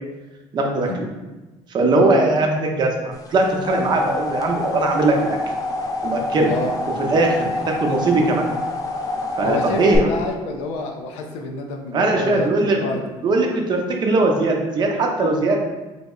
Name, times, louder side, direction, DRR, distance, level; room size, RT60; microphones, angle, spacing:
voice 1, 0.5-1.1 1.7-5.4 6.0-6.5 7.0-8.5 9.4-10.1 11.9-12.8 13.2-15.6, right 2 dB, 40° right, 2 dB, 0.6 m, -20 dB
sound 1, 3.3-10.0, left 2 dB, 30° left, 0.5 m, -27 dB
voice 2, 9.4-12.5 12.8-13.0, left 2 dB, 90° left, 3 dB, 0.5 m, -28 dB
3.4 x 2.1 x 3.6 m, 1.1 s
cardioid pair, 115°, 11 cm